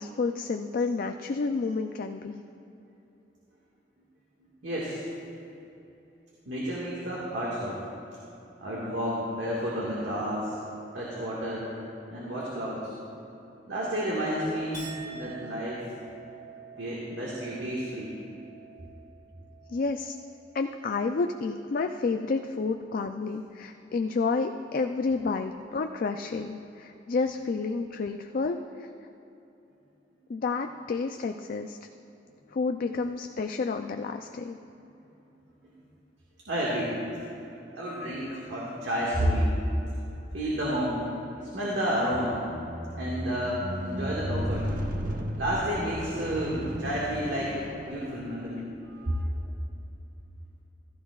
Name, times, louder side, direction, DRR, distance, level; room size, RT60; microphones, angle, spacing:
voice 1, 0.0-2.4 19.7-20.2 20.5-28.9 30.3-31.8 32.5-34.6, left 4 dB, 50° left, 6 dB, 0.4 m, -30 dB
voice 2, 4.4-5.1 6.4-7.8 8.6-10.6 10.9-11.8 12.1-12.9 13.7-15.9 16.8-18.2 34.8-34.9 35.2-35.3 35.6-35.7 36.5-37.0 37.4-39.6 39.9-40.0 40.3-41.0 41.4-42.4 43.0-44.7 45.4-48.7 49.1-49.4, equal, 85° right, -6 dB, 1.8 m, -31 dB
Chink clink, 14.7-21.3 21.7-22.3, right 5 dB, 20° right, 2.7 m, -49 dB
Squeak, 42.1-48.5 49.2-49.4, equal, 50° right, 0.8 m, -35 dB
15.0 x 14.0 x 2.4 m, 3.0 s
head